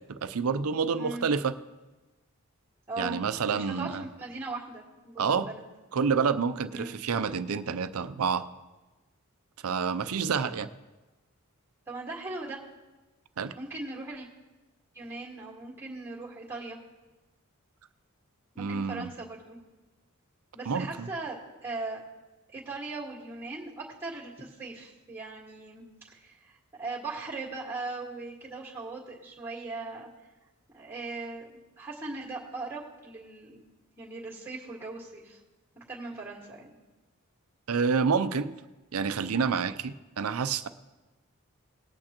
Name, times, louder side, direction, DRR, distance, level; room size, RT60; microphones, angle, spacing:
voice 1, 0.1-1.5 3.0-4.0 5.2-5.5 5.9-8.5 9.6-10.7 13.4-13.5 18.6-19.1 20.7-21.1 37.7-38.5 38.9-40.7, right 5 dB, 85° right, 12 dB, 0.5 m, -28 dB
voice 2, 2.9-3.2 3.5-5.6 6.7-7.0 11.9-12.6 13.5-14.3 14.9-16.8 18.5-19.6 20.5-21.4 21.6-22.0 22.5-30.1 30.7-31.5 31.8-35.4 35.7-36.7, right 3 dB, 10° right, -3 dB, 1.8 m, -39 dB
19.0 x 8.7 x 3.0 m, 1.1 s
head